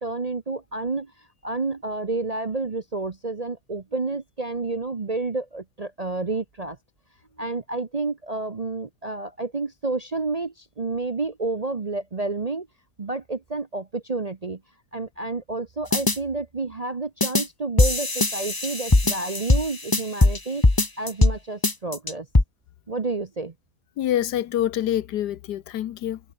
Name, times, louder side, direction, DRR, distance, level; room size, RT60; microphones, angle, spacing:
voice 1, 0.0-6.8 7.4-12.7 13.0-14.6 14.9-20.6 21.0-22.3 22.9-23.5, right 3 dB, 35° right, 0.7 m, -30 dB
sound 1, 15.9-16.2 17.2-17.4 17.8-20.4 20.6-21.4 21.6-22.4, left 2 dB, 15° left, 1.3 m, -20 dB
voice 2, 24.0-26.2, left 12 dB, 75° left, 1.4 m, -26 dB
omnidirectional pair, 1.8 m